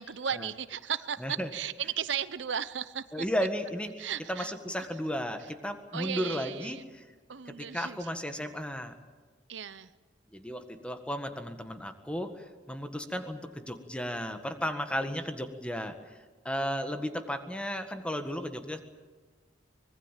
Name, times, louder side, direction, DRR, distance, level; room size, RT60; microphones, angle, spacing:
voice 1, 0.0-3.2 4.0-4.5 5.9-6.8 7.3-8.1 9.5-9.9, right 8 dB, 70° right, 15 dB, 0.8 m, -35 dB
voice 2, 3.1-7.0 7.5-9.0 10.3-15.9 16.4-18.8, equal, 5° left, 7 dB, 1.7 m, -34 dB
24.5 x 20.5 x 7.5 m, 1.4 s
head